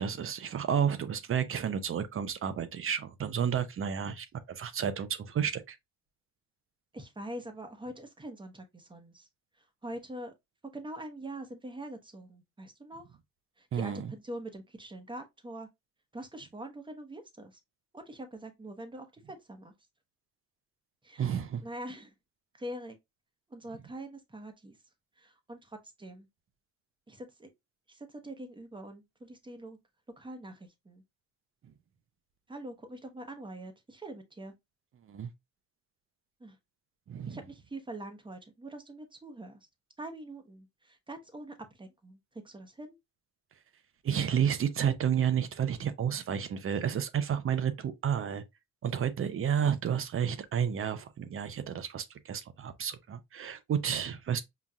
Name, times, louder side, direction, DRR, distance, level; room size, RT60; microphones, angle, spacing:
voice 1, 0.0-5.8 13.7-14.1 21.2-21.6 35.1-35.3 37.1-37.4 44.0-48.4 48.8-54.4, right 8 dB, 45° right, 0.6 m, -31 dB
voice 2, 6.9-9.3 9.6-10.3 10.7-13.0 13.6-15.7 16.1-17.6 17.9-19.7 21.0-21.3 21.6-22.1 22.5-23.0 23.5-24.8 25.2-26.3 27.1-27.5 27.9-29.8 30.2-31.0 32.5-34.5 36.4-36.6 37.2-39.7 40.0-42.2 42.4-43.0, right 1 dB, 15° right, 0.9 m, -44 dB
5.7 x 2.4 x 2.3 m
cardioid pair, 90°, 30 cm